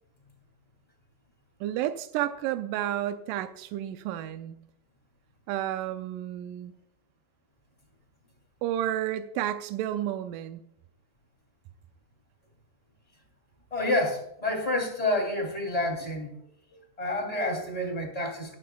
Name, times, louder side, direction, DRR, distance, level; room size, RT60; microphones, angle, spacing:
voice 1, 1.6-4.6 5.5-6.7 8.6-10.6, right 12 dB, 85° right, 9 dB, 1.9 m, -31 dB
voice 2, 13.7-16.3 17.0-18.5, left 1 dB, 10° left, 3 dB, 2.3 m, -28 dB
17.5 x 11.0 x 2.3 m, 0.76 s
omnidirectional pair, 4.3 m